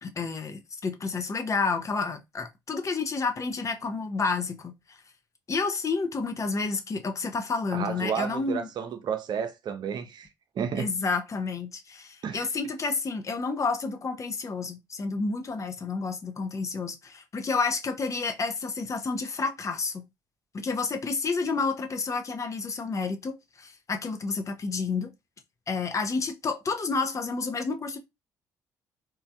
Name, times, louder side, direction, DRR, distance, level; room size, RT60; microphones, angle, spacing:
voice 1, 0.0-5.0 5.5-8.7 10.8-20.1 20.5-25.1 25.7-28.0, left 4 dB, 35° left, 0.6 m, -30 dB
voice 2, 7.7-10.3 10.6-10.9 12.2-12.5, right 7 dB, 50° right, 0.6 m, -31 dB
3.2 x 2.2 x 2.6 m
figure-of-eight pair, 45°, 10 cm